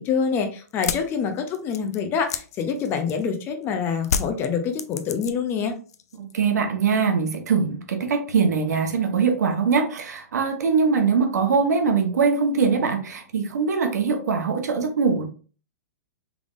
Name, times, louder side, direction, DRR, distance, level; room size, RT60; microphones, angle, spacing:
voice 1, 0.0-5.7, left 6 dB, 25° left, 6 dB, 0.6 m, -26 dB
sound 1, 0.7-3.4 4.0-5.6 5.9-6.5, left 7 dB, 70° left, 0.4 m, -30 dB
voice 2, 6.2-15.2, right 5 dB, 80° right, 5 dB, 0.9 m, -22 dB
3.5 x 3.5 x 2.5 m, 0.39 s
hypercardioid pair, 145°, 9 cm